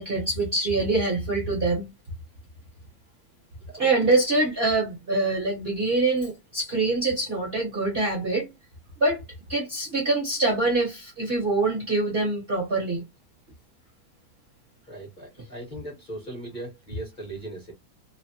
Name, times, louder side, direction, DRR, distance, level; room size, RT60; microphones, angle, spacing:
voice 1, 0.0-1.9 3.8-8.5 9.0-9.2 9.5-13.0, right 2 dB, 40° right, 0.9 m, -24 dB
voice 2, 14.8-17.7, right 1 dB, 30° left, 1.0 m, -39 dB
3.2 x 2.0 x 2.7 m
omnidirectional pair, 2.1 m